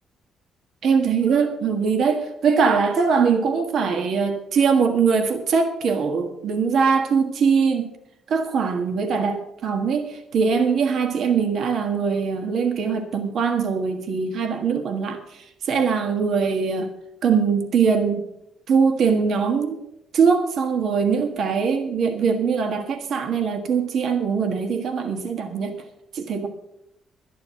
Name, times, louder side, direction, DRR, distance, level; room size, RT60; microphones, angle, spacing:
voice 1, 0.8-7.9 8.3-16.9 17.2-18.3 18.7-19.8 20.1-25.7 26.1-26.5, right 5 dB, 65° right, 6 dB, 1.5 m, -22 dB
12.0 x 10.0 x 5.8 m, 0.80 s
cardioid pair, 90°, 0 cm